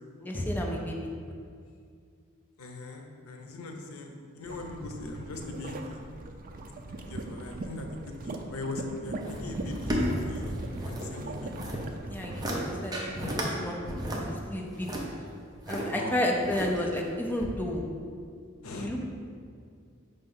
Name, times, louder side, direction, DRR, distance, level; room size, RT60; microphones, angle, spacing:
voice 1, 0.2-1.1 12.1-14.9 15.7-17.9 18.8-19.0, left 1 dB, 10° left, 0 dB, 0.5 m, -32 dB
voice 2, 2.6-6.0 7.1-7.9 8.2-10.6 10.8-11.5 15.9-16.1 18.6-18.9, left 2 dB, 90° left, 3 dB, 0.7 m, -40 dB
sound 1, 4.5-12.5, right 2 dB, 40° right, 0.4 m, -40 dB
sound 2, 9.2-11.1 11.3-11.8 12.2-12.6 12.9-13.5 13.8-15.8 16.4-17.0 17.4-17.5, equal, 20° right, 0.8 m, -33 dB
5.6 x 3.3 x 5.4 m, 2.2 s
head